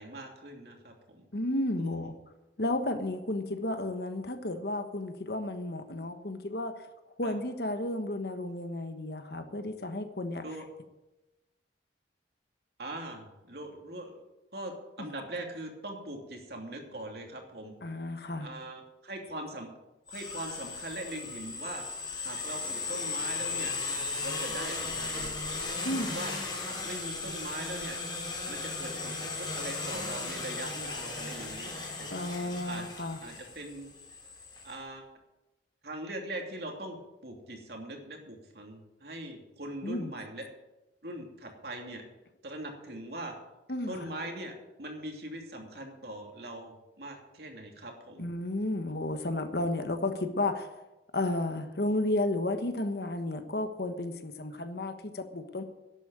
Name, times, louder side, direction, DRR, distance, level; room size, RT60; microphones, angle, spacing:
voice 1, 0.0-1.2 1.8-2.1 7.2-7.3 10.4-10.6 12.8-14.2 14.5-17.7 18.4-19.7 20.1-21.8 22.2-23.7 24.2-25.3 25.8-26.3 26.6-28.0 28.5-32.1 32.4-32.8 33.2-33.9 34.6-35.1 35.8-40.5 41.0-42.0 42.4-43.4 43.9-48.3, right 1 dB, 60° right, 2 dB, 2.8 m, -41 dB
voice 2, 1.3-2.1 2.6-6.7 7.2-10.4 17.8-18.5 25.8-26.2 32.1-33.2 39.8-40.1 43.7-44.1 48.2-50.7 51.1-55.6, left 1 dB, 60° left, 8 dB, 1.3 m, -32 dB
sound 1, 20.1-34.7, left 3 dB, 25° left, 3.4 m, -36 dB
11.5 x 8.4 x 9.1 m, 1.0 s
head